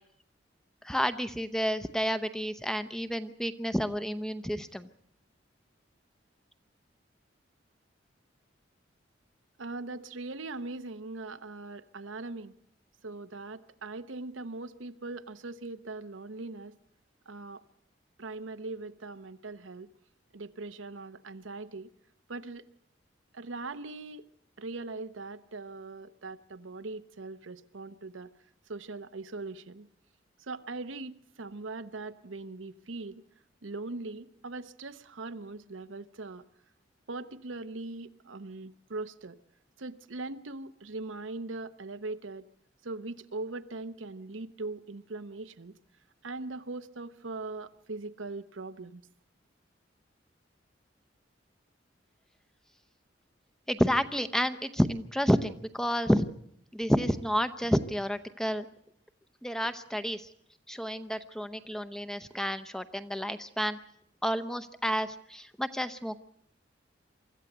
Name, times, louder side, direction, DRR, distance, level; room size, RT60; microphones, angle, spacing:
voice 1, 0.8-4.9 53.7-56.3 56.7-58.7 59.4-60.3 60.7-63.8 64.2-66.2, equal, 5° left, 10 dB, 0.7 m, -30 dB
voice 2, 9.6-12.5 13.0-16.7 17.3-17.6 18.2-19.9 20.3-21.9 22.3-22.6 23.3-24.2 24.6-28.3 28.7-29.9 30.4-33.2 33.6-36.4 37.1-39.4 39.8-42.4 42.8-45.7 46.2-49.0, right 3 dB, 90° right, 10 dB, 0.9 m, -40 dB
24.5 x 14.0 x 8.0 m, 0.71 s
head